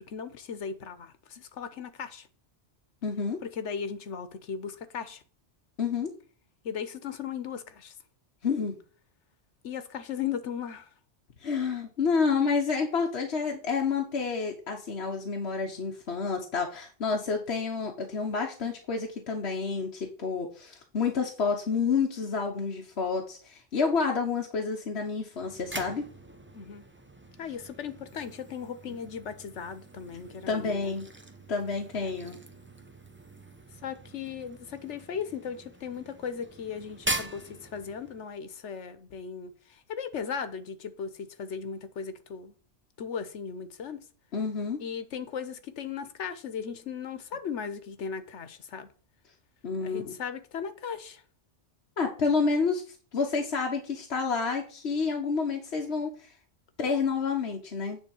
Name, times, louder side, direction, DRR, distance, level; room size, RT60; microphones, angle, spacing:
voice 1, 0.0-2.3 3.4-5.2 6.6-7.9 9.6-10.9 26.5-26.8 27.4-30.9 32.0-32.1 33.8-42.5 43.0-44.0 44.8-48.9 49.8-51.2, left 7 dB, 90° left, 1.3 m, -37 dB
voice 2, 3.0-3.4 5.8-6.1 8.4-8.8 11.4-26.1 28.9-29.0 30.5-31.1 31.5-32.4 44.3-44.8 49.6-50.1 52.0-52.8 53.1-56.3 56.8-58.0, left 5 dB, 70° left, 1.4 m, -29 dB
sound 1, 25.3-38.3, right 1 dB, 10° right, 0.7 m, -42 dB
9.5 x 3.7 x 7.0 m
omnidirectional pair, 1.2 m